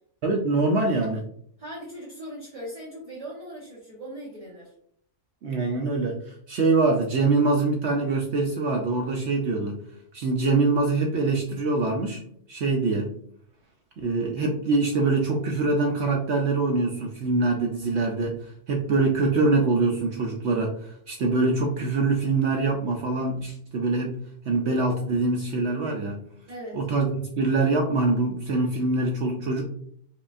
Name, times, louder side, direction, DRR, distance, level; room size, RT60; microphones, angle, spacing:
voice 1, 0.2-1.2 5.4-9.8 10.1-12.2 12.5-13.1 14.0-24.2 24.5-26.2 26.7-29.6, right 3 dB, 70° right, 1 dB, 0.6 m, -24 dB
voice 2, 1.6-4.7 26.5-26.8, equal, 30° right, -7 dB, 0.9 m, -39 dB
4.8 x 2.4 x 2.4 m, 0.64 s
omnidirectional pair, 1.6 m